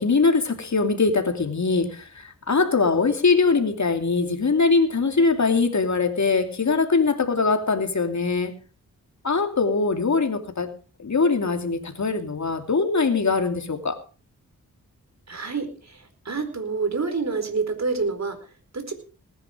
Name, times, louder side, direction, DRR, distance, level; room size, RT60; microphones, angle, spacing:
voice 1, 0.0-8.5 9.2-10.7 11.0-14.0, left 4 dB, 50° left, 6 dB, 2.8 m, -22 dB
voice 2, 15.3-18.9, right 4 dB, 50° right, 8 dB, 4.5 m, -28 dB
19.0 x 10.5 x 5.1 m, 0.37 s
cardioid pair, 60°, 35 cm